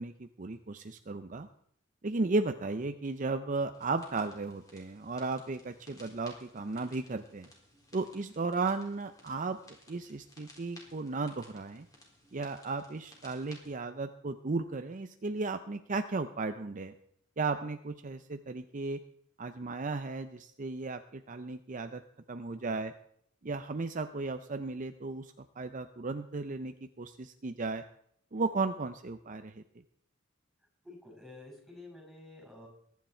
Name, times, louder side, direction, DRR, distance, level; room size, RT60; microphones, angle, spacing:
voice 1, 0.0-1.5 2.0-7.5 7.9-9.6 9.9-11.9 12.3-16.9 17.4-19.0 19.4-22.0 22.3-22.9 23.4-27.8 28.3-29.6, right 3 dB, 40° right, 8 dB, 0.6 m, -35 dB
sound 1, 3.7-13.7, left 1 dB, 20° left, 3.9 m, -58 dB
voice 2, 30.8-32.7, left 2 dB, ahead, 0 dB, 5.5 m, -50 dB
22.0 x 9.5 x 4.4 m, 0.69 s
head